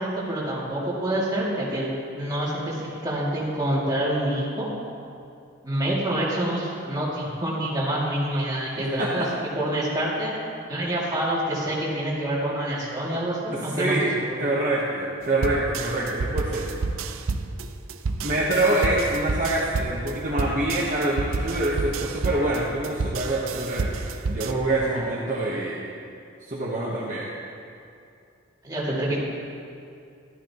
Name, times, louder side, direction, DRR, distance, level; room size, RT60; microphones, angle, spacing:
voice 1, 0.0-4.7 5.6-9.3 9.6-10.3 10.7-14.3 28.6-29.2, right 1 dB, 20° right, -7 dB, 2.2 m, -27 dB
voice 2, 13.5-14.1 14.4-16.8 18.2-23.9 24.3-25.9 26.5-27.3, right 2 dB, 40° right, -5 dB, 1.0 m, -25 dB
sound 1, 15.4-24.5, right 3 dB, 85° right, 0.5 m, -29 dB
12.5 x 12.0 x 2.9 m, 2.5 s
head